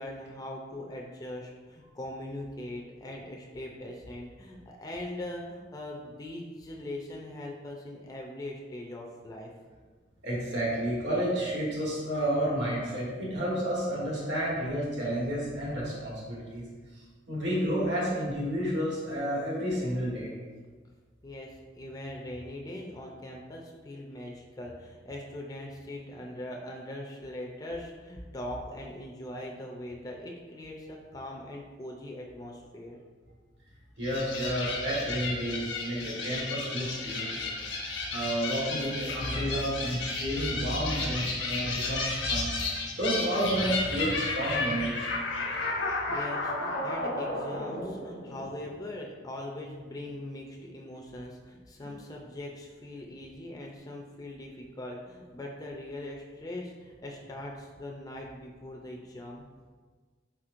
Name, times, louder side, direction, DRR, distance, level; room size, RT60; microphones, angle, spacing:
voice 1, 0.0-9.5 21.2-33.0 46.1-59.4, left 1 dB, 20° left, -1 dB, 0.4 m, -41 dB
voice 2, 10.2-16.7 16.9-20.3 34.0-37.6 38.1-45.1, equal, 75° right, -5 dB, 1.4 m, -31 dB
sound 1, 34.0-48.7, left 3 dB, 85° left, 1.0 m, -33 dB
4.3 x 4.2 x 2.5 m, 1.5 s
head